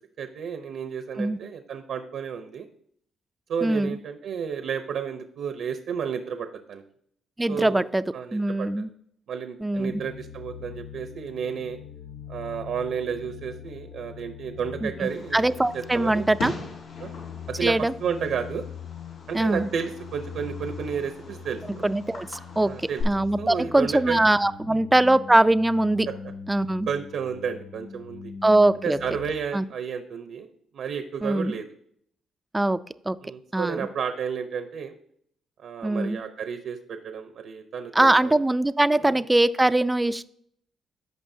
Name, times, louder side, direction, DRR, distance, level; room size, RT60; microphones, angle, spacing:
voice 1, 0.2-2.7 3.5-6.8 7.5-7.9 8.1-8.9 9.3-11.8 12.3-16.3 17.0-17.2 17.5-18.6 19.3-21.9 22.6-24.2 24.7-24.8 26.1-26.2 26.9-28.3 28.8-30.5 30.7-31.7 33.2-34.9 35.6-38.4 39.0-39.2, right 7 dB, 70° right, 8 dB, 0.7 m, -32 dB
voice 2, 3.6-4.0 7.4-8.0 8.3-8.9 9.6-9.9 14.8-14.9 15.3-16.5 17.6-17.9 19.3-19.7 21.8-26.1 26.5-26.9 28.4-29.0 29.5-29.6 31.2-31.5 32.5-32.8 33.1-33.2 33.5-33.9 35.8-36.2 38.0-40.3, right 1 dB, 15° right, 14 dB, 0.4 m, -22 dB
sound 1, 9.7-29.3, left 7 dB, 65° left, 0.5 m, -42 dB
Fireworks, 15.0-23.0, left 3 dB, 85° left, 3.7 m, -42 dB
14.5 x 5.5 x 2.7 m, 0.66 s
cardioid pair, 90°, 0 cm